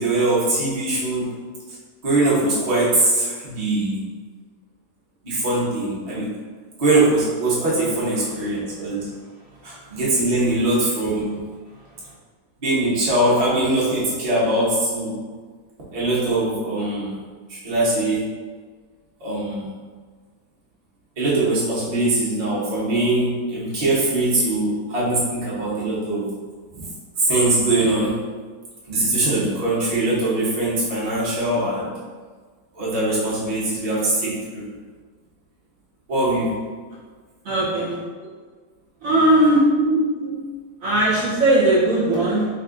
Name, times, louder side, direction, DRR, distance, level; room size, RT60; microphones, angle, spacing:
voice 1, 0.0-1.3 2.0-4.0 5.2-6.3 6.8-9.1 9.6-11.4 12.6-15.2 15.9-17.2 17.5-18.2 19.2-19.7 21.2-26.3 26.7-26.9 27.2-28.2 28.9-31.9 32.7-34.6 36.1-36.6 40.2-40.3, right 2 dB, 30° right, -8 dB, 0.9 m, -22 dB
voice 2, 37.4-38.0 39.0-39.6 40.8-42.5, right 1 dB, 65° right, -6 dB, 1.2 m, -18 dB
3.4 x 2.4 x 3.7 m, 1.5 s
omnidirectional pair, 1.6 m